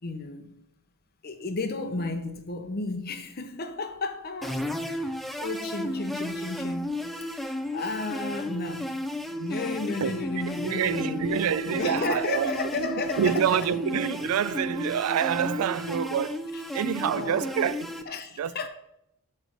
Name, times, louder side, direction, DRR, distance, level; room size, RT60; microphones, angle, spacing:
voice 1, 0.0-0.5 1.2-5.1 5.4-7.3 7.7-8.9 9.3-13.7 16.5-16.6 17.1-17.5 18.1-18.7, left 3 dB, 45° left, 0.7 m, -33 dB
sound 1, 4.4-18.0, left 1 dB, ahead, 0.4 m, -33 dB
voice 2, 10.6-16.5 16.7-18.0 18.4-18.7, right 8 dB, 85° right, 0.3 m, -27 dB
7.8 x 3.3 x 6.3 m
head